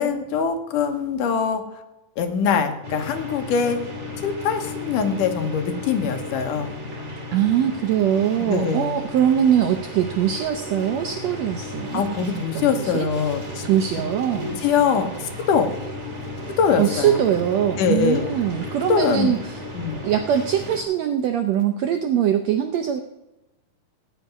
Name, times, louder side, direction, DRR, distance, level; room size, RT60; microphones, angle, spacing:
voice 1, 0.0-1.6 2.2-3.8 4.2-6.7 8.4-9.1 11.9-13.6 14.3-15.7 16.6-17.2 17.8-18.3 18.9-19.3 19.7-20.0, left 6 dB, 75° left, 7 dB, 2.7 m, -23 dB
sound 1, 2.8-20.8, left 1 dB, 20° right, 2.4 m, -34 dB
voice 2, 7.3-12.3 12.5-13.1 13.6-14.6 16.8-19.6 20.0-23.0, right 9 dB, 75° right, 7 dB, 1.5 m, -22 dB
17.5 x 5.9 x 9.4 m, 0.96 s
omnidirectional pair, 3.9 m